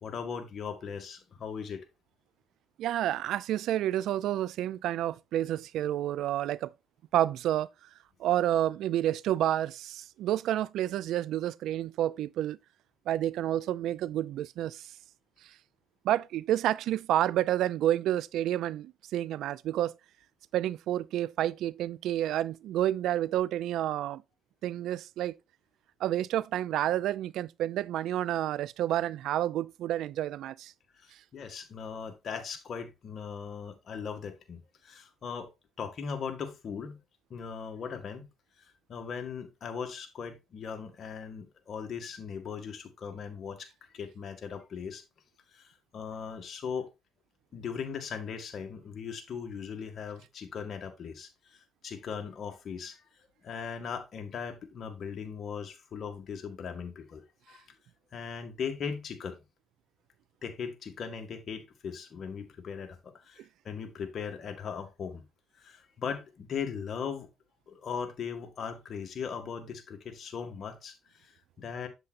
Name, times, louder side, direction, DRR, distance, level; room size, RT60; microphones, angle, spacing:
voice 1, 0.0-1.8 31.0-35.5 35.8-37.0 37.3-38.3 38.9-43.7 43.9-45.0 45.5-46.9 47.5-51.3 51.8-53.0 53.4-57.2 57.5-57.6 58.1-59.4 60.4-65.2 65.6-67.3 67.7-71.3 71.6-71.9, left 6 dB, 55° left, 2.0 m, -39 dB
voice 2, 2.8-6.7 7.1-7.7 8.2-12.6 13.1-14.8 16.0-19.9 20.5-24.2 24.6-25.3 26.0-30.7, right 12 dB, 85° right, 0.3 m, -29 dB
7.9 x 7.7 x 2.5 m
cardioid pair, 90°, 0 cm